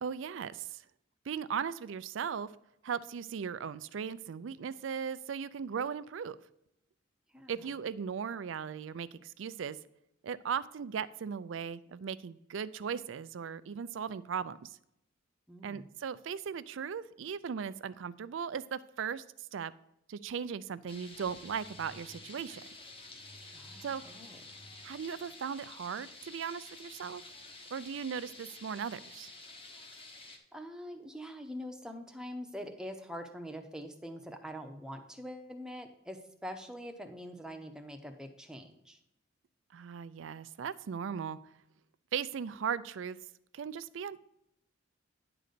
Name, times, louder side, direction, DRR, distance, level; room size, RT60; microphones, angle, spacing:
voice 1, 0.0-0.8 1.3-2.5 2.8-6.4 7.5-9.8 10.2-14.8 15.6-19.2 19.5-19.7 20.1-22.6 23.8-24.0 24.8-27.2 27.7-29.3 39.7-41.4 42.1-43.2 43.5-44.2, right 7 dB, 75° right, 17 dB, 0.4 m, -37 dB
voice 2, 15.5-15.9 23.5-24.4 30.5-39.0, equal, 5° right, 4 dB, 0.7 m, -44 dB
sound 1, 20.9-30.4, left 2 dB, 30° left, 1.0 m, -50 dB
10.0 x 3.9 x 6.7 m, 0.83 s
head